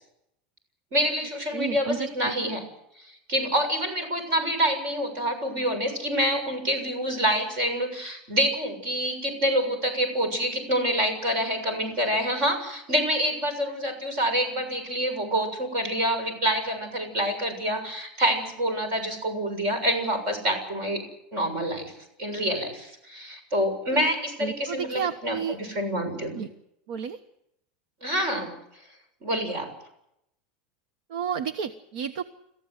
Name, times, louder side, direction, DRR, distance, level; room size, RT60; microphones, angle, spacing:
voice 1, 0.9-2.6 3.3-21.0 21.3-21.9 22.2-26.4 28.0-28.5 29.2-29.7, equal, 40° right, 6 dB, 7.0 m, -27 dB
voice 2, 1.5-2.1 23.9-24.1 24.4-25.6 26.3-26.5 26.9-27.2 31.1-32.2, right 7 dB, 60° right, 11 dB, 1.1 m, -31 dB
27.5 x 15.0 x 8.1 m, 0.80 s
supercardioid pair, 180°, 5 cm